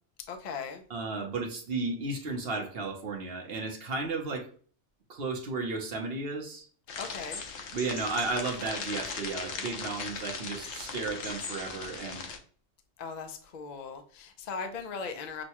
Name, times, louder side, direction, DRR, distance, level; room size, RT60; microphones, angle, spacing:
voice 1, 0.3-0.8 7.0-7.4 13.0-15.4, left 5 dB, 50° left, 6 dB, 0.6 m, -38 dB
voice 2, 0.9-4.5 5.1-6.7 7.7-12.3, right 3 dB, 60° right, 2 dB, 1.0 m, -34 dB
sound 1, 6.9-12.4, left 5 dB, 80° left, 1.0 m, -38 dB
6.2 x 2.2 x 2.9 m, 0.43 s
omnidirectional pair, 1.2 m